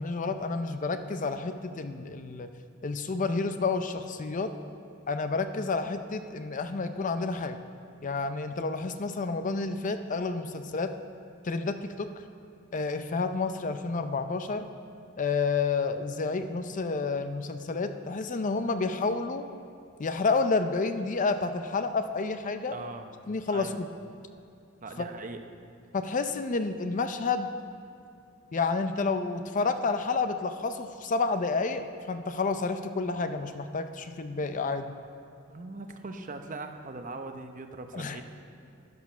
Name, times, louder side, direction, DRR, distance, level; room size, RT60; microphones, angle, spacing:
voice 1, 0.0-2.5 2.8-4.5 5.1-7.6 8.0-10.9 11.4-12.1 12.7-14.7 15.2-19.4 20.0-22.7 23.3-23.9 25.0-25.1 25.9-27.5 28.5-34.9 37.9-38.2, left 4 dB, 40° left, 9 dB, 0.5 m, -30 dB
voice 2, 22.7-23.1 23.5-23.8 24.8-25.5 35.5-38.2, right 3 dB, 40° right, 6 dB, 0.8 m, -40 dB
12.0 x 11.0 x 5.6 m, 2.5 s
head